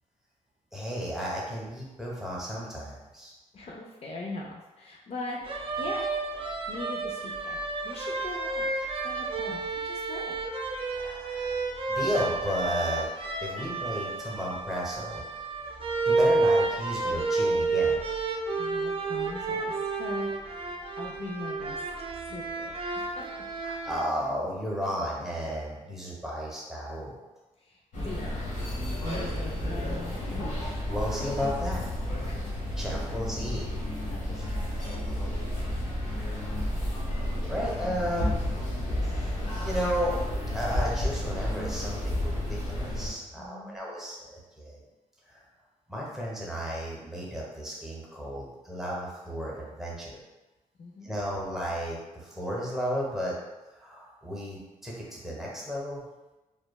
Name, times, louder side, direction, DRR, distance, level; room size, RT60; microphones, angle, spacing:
voice 1, 0.7-3.3 10.9-11.6 11.9-13.1 13.4-15.2 16.1-18.0 23.6-27.2 30.6-31.8 32.8-33.7 36.1-36.5 37.5-38.5 39.0-39.3 39.6-40.2 40.5-44.8 45.3-45.4 45.9-50.2 51.0-53.3 53.7-56.0, equal, 5° right, -5 dB, 0.8 m, -33 dB
voice 2, 3.5-5.4 5.8-6.1 6.7-8.7 9.0-10.4 18.6-20.3 21.0-21.8 22.3-23.5 27.6-28.4 29.1-30.6 32.3-32.6 33.0-33.2 34.0-34.4 34.6-34.9 43.3-43.9 50.8-51.1, left 2 dB, 50° left, -2 dB, 0.4 m, -41 dB
sound 1, 5.5-24.0, right 3 dB, 45° right, 0.4 m, -30 dB
sound 2, 27.9-43.1, left 1 dB, 80° left, 1.1 m, -31 dB
3.1 x 2.1 x 2.2 m, 1.1 s
cardioid pair, 80°, 13 cm